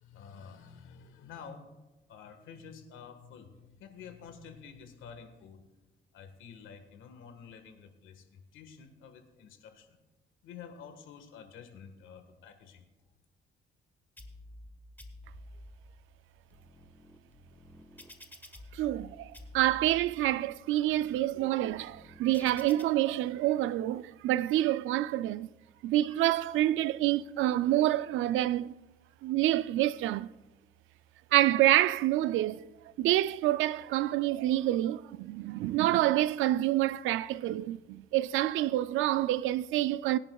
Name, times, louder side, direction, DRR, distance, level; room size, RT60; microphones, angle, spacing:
voice 1, 0.0-1.7 2.1-5.6 6.1-10.0 10.4-12.9, left 6 dB, 90° left, 1.5 m, -50 dB
sound 1, 14.2-14.7 15.0-15.7 16.3-19.1 19.3-20.1 20.6-22.8, left 1 dB, 10° left, 1.4 m, -51 dB
voice 2, 18.7-25.5 25.8-28.7 29.2-30.3 31.3-32.7 33.0-40.2, right 14 dB, 85° right, 0.4 m, -27 dB
21.0 x 10.5 x 2.3 m
cardioid pair, 90°, 20 cm